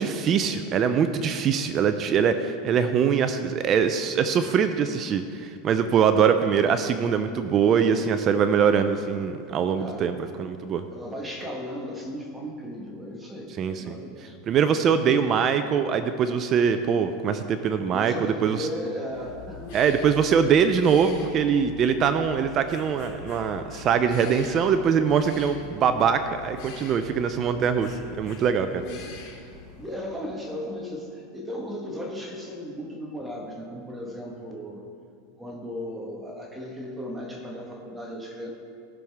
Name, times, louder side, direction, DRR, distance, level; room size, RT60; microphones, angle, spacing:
voice 1, 0.0-10.8 13.6-14.0 14.5-18.7 19.7-28.8, right 7 dB, 35° right, 9 dB, 0.4 m, -23 dB
voice 2, 9.7-10.1 10.9-14.4 14.8-15.2 17.9-19.9 28.7-29.2 29.8-34.8 35.4-38.5, equal, 10° right, 0 dB, 1.3 m, -36 dB
sound 1, 19.1-29.9, left 5 dB, 60° left, 2.6 m, -44 dB
17.5 x 6.4 x 3.5 m, 2.4 s
supercardioid pair, 140°, 0 cm